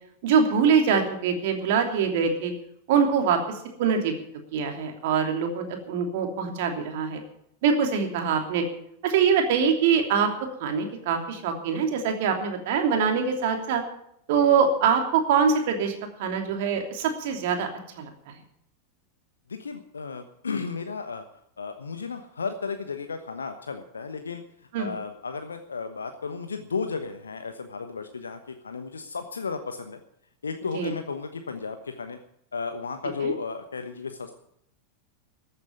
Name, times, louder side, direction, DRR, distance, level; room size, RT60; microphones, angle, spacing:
voice 1, 0.2-2.5 2.9-3.4 3.8-4.1 4.5-7.2 7.6-8.6 9.0-10.3 10.6-13.8 14.3-15.9 16.2-17.7 17.9-18.1 24.7-24.9 30.7-30.9 33.2-33.3, right 6 dB, 50° right, 4 dB, 3.0 m, -23 dB
voice 2, 19.5-21.2 21.6-24.4 24.8-30.0 30.4-32.2 32.5-34.3, left 5 dB, 75° left, 7 dB, 1.1 m, -34 dB
14.0 x 9.1 x 9.1 m, 0.73 s
figure-of-eight pair, 90°, 0 cm